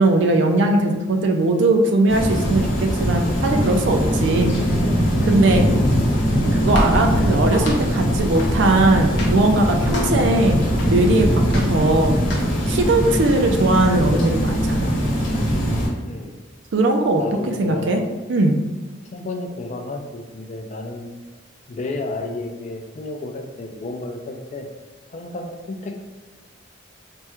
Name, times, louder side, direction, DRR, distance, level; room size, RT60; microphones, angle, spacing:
voice 1, 0.0-4.5 5.3-5.6 6.6-12.2 12.7-15.0 16.7-18.0 18.3-18.6, right 2 dB, 65° right, 4 dB, 0.4 m, -19 dB
sound 1, 2.1-15.9, equal, 85° left, 1.0 m, -21 dB
sound 2, 5.7-13.1, equal, 60° left, 0.7 m, -30 dB
voice 2, 16.0-16.3 17.2-18.1 19.1-21.1 21.7-24.7 25.1-26.0, left 2 dB, 40° left, 4 dB, 0.3 m, -32 dB
3.4 x 2.1 x 2.9 m, 1.3 s
head